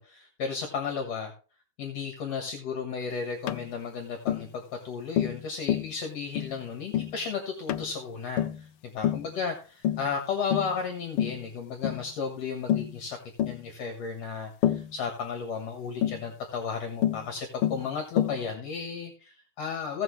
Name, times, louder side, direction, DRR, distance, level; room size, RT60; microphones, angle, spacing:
voice 1, 0.0-1.3 1.8-13.2 13.5-20.0, left 5 dB, 65° left, 3 dB, 2.5 m, -34 dB
Tap, 3.5-3.7 4.3-4.5 5.2-5.4 5.7-5.9 6.4-6.6 6.9-7.2 7.7-7.9 8.4-8.6 9.0-9.3 9.8-10.1 10.5-10.8 11.2-11.4 11.8-12.0 12.7-12.9 13.4-13.6 14.6-14.9 16.0-16.2 17.0-17.3 17.6-17.9 18.2-18.4, left 11 dB, 85° left, 1.2 m, -27 dB
16.5 x 6.2 x 3.1 m, 0.37 s
omnidirectional pair, 3.3 m